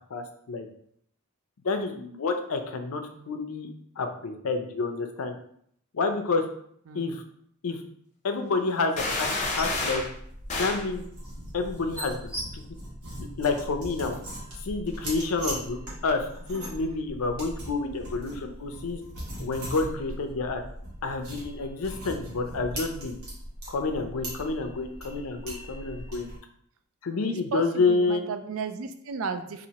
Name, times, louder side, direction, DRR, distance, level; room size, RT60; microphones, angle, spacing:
voice 1, 0.1-0.7 1.6-3.7 4.0-5.3 5.9-6.5 6.9-7.2 7.6-7.8 8.2-9.3 9.5-10.0 10.5-11.1 11.5-12.6 13.2-14.2 14.6-19.0 19.4-20.6 21.0-23.2 23.7-26.3 27.0-28.2, left 3 dB, 80° left, 6 dB, 0.5 m, -29 dB
voice 2, 6.9-7.2 27.3-29.7, right 5 dB, 70° right, 9 dB, 0.4 m, -34 dB
sound 1, 9.0-10.1 10.5-10.9, left 3 dB, 30° left, 0.6 m, -29 dB
sound 2, 9.4-26.4, right 1 dB, 90° right, 1.4 m, -39 dB
4.1 x 2.6 x 2.8 m, 0.68 s
head